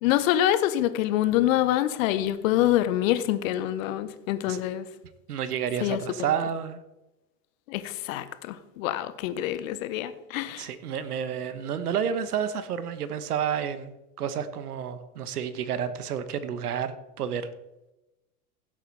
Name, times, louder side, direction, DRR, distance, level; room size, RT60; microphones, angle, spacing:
voice 1, 0.0-4.9 5.8-6.0 7.7-10.7, left 13 dB, 60° left, 13 dB, 1.3 m, -26 dB
voice 2, 5.3-6.8 10.6-17.5, right 8 dB, 80° right, 12 dB, 1.3 m, -30 dB
16.5 x 8.2 x 4.2 m, 0.96 s
hypercardioid pair, 90°, 45 cm